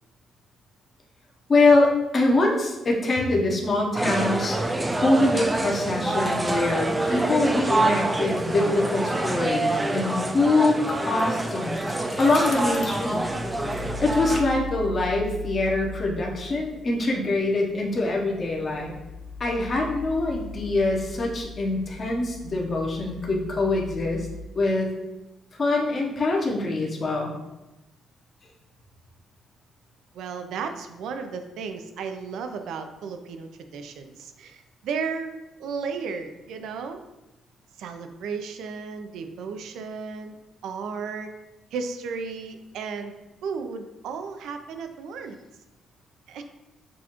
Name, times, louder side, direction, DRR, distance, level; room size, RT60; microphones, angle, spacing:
voice 1, 1.5-4.6 5.0-13.2 14.0-18.9 19.4-24.3 24.5-24.9 25.6-27.3, left 2 dB, 40° left, -2 dB, 0.8 m, -24 dB
sound 1, 4.0-14.4, right 2 dB, 15° right, 0.4 m, -26 dB
Bicycle, 11.0-14.9, left 4 dB, 60° left, 0.5 m, -43 dB
sound 2, 11.8-24.4, left 2 dB, 85° left, 0.9 m, -39 dB
voice 2, 30.1-37.0 37.8-40.4 40.6-41.3 41.7-43.1 43.4-45.4 46.3-46.4, right 5 dB, 80° right, 7 dB, 0.4 m, -34 dB
6.1 x 2.4 x 2.9 m, 1.0 s
cardioid pair, 90°, 0 cm